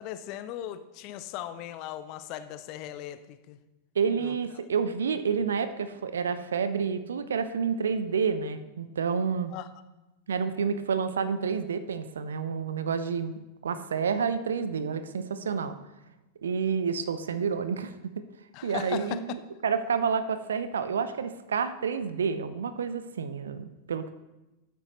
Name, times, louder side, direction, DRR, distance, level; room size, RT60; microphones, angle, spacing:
voice 1, 0.0-3.6 4.2-4.3 9.5-9.7 18.5-19.2, left 12 dB, 40° left, 12 dB, 0.5 m, -38 dB
voice 2, 4.0-9.5 10.3-15.7 16.4-18.2 18.6-24.1, right 6 dB, 65° right, 12 dB, 0.5 m, -29 dB
13.0 x 8.0 x 3.1 m, 1.0 s
figure-of-eight pair, 90°, 0 cm